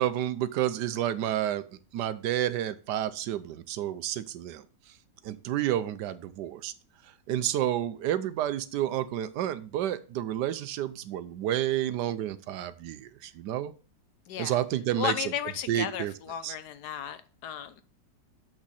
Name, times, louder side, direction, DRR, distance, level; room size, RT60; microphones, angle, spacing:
voice 1, 0.0-1.6 1.9-4.6 5.2-6.7 7.3-13.7 14.4-15.1 15.7-16.1 16.4-16.5, right 12 dB, 75° right, 1.2 m, -30 dB
voice 2, 14.3-14.6 15.0-17.8, left 10 dB, 70° left, 1.1 m, -34 dB
7.4 x 6.0 x 4.1 m
omnidirectional pair, 1.9 m